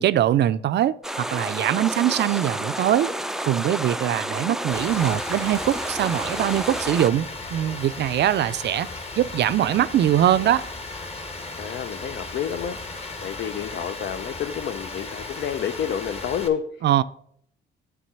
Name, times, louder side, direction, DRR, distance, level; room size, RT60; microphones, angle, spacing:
voice 1, 0.0-3.1 3.4-7.3 7.5-8.9 9.2-10.6 16.8-17.0, right 11 dB, 60° right, 14 dB, 0.5 m, -22 dB
sound 1, 1.0-7.1, right 1 dB, ahead, 0.4 m, -30 dB
Rain, 4.7-16.5, left 3 dB, 30° left, 1.2 m, -36 dB
voice 2, 11.6-16.9, left 8 dB, 60° left, 9 dB, 0.6 m, -30 dB
9.4 x 3.7 x 6.7 m, 0.66 s
cardioid pair, 90°, 20 cm